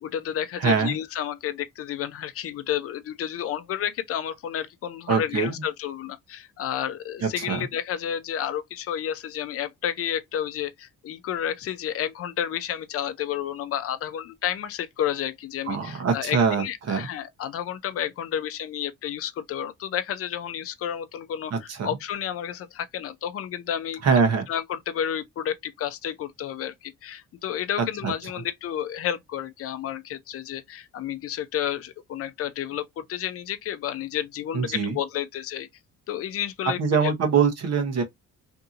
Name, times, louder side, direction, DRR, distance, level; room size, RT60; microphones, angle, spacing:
voice 1, 0.0-24.0 24.5-35.7 36.1-37.1, left 10 dB, 50° left, 0.4 m, -31 dB
voice 2, 0.6-0.9 5.1-5.6 7.2-7.7 15.7-17.1 21.5-21.9 24.0-24.5 28.0-28.1 34.5-35.0 36.8-38.0, right 6 dB, 55° right, 0.8 m, -23 dB
2.7 x 2.6 x 2.4 m
cardioid pair, 130°, 31 cm